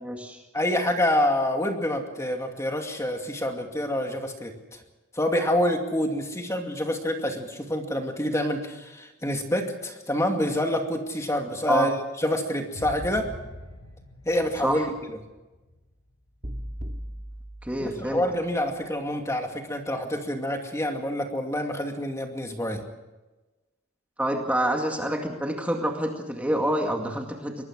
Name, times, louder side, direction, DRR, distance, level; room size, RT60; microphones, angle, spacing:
voice 1, 0.0-0.4 11.7-11.9 14.6-14.8 17.6-18.2 24.2-27.6, right 1 dB, 5° right, 2 dB, 2.1 m, -27 dB
voice 2, 0.5-4.8 5.1-13.3 14.3-14.9 17.8-22.8, left 1 dB, 15° left, 3 dB, 2.4 m, -27 dB
sound 1, 12.7-15.9 16.2-16.5, equal, 85° left, 6.4 m, -43 dB
sound 2, 16.4-18.7, equal, 40° right, 2.1 m, -38 dB
24.0 x 20.0 x 6.4 m, 1.1 s
head